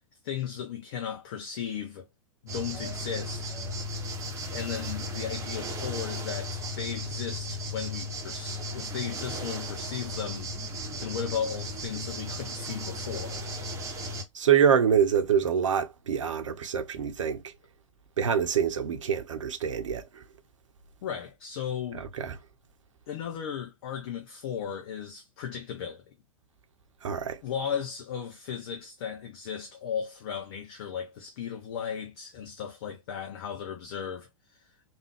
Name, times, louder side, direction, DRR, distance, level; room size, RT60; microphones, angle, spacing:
voice 1, 0.2-2.1 2.4-3.6 4.5-10.7 11.0-13.4 21.0-22.0 23.1-26.0 27.4-34.7, left 8 dB, 45° left, 0.7 m, -36 dB
sound 1, 2.5-14.2, equal, 15° right, 1.0 m, -35 dB
voice 2, 14.3-17.5 18.2-20.2 21.9-22.4 27.0-27.4, right 8 dB, 65° right, 0.8 m, -25 dB
3.5 x 2.6 x 3.4 m
figure-of-eight pair, 100°, 17 cm